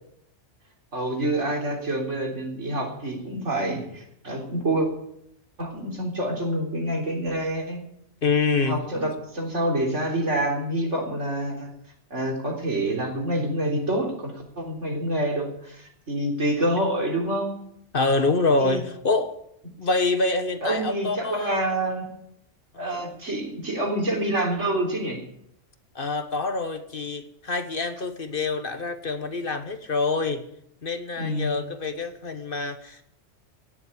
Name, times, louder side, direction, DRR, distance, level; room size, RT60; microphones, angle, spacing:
voice 1, 0.9-4.9 5.6-7.8 8.6-11.7 12.1-17.6 18.6-18.8 20.6-22.1 22.8-25.2 31.2-31.6, right 1 dB, 75° right, 1 dB, 3.9 m, -27 dB
voice 2, 8.2-8.8 17.9-19.4 19.8-21.6 22.7-23.1 25.9-30.4 30.8-33.0, left 3 dB, 45° left, 8 dB, 1.4 m, -26 dB
17.5 x 7.4 x 9.9 m, 0.73 s
omnidirectional pair, 1.3 m